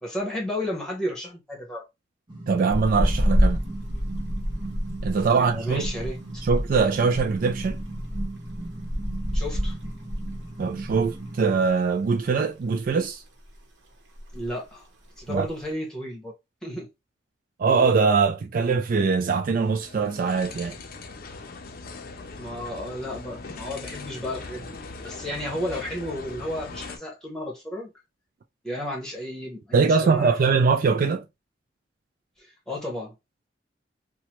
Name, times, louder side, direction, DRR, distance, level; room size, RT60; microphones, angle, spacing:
voice 1, 0.0-1.8 5.4-6.2 9.3-9.8 14.3-14.9 15.2-16.3 16.6-16.9 22.4-27.9 28.6-30.6 32.4-33.1, left 1 dB, 5° left, 1.1 m, -33 dB
sound 1, 2.3-11.6, right 2 dB, 25° right, 1.1 m, -38 dB
voice 2, 2.5-3.6 5.0-5.9 6.4-7.8 10.6-13.2 15.3-15.5 17.6-20.7 29.7-31.2, right 5 dB, 50° right, 0.3 m, -22 dB
sound 2, 2.7-11.2 11.5-11.7 12.1-12.9 13.3-13.6 13.9-14.0 14.1-14.6 15.1-15.6, equal, 80° right, 0.9 m, -28 dB
sound 3, 19.6-27.0, left 3 dB, 55° left, 0.5 m, -40 dB
2.9 x 2.2 x 2.9 m
head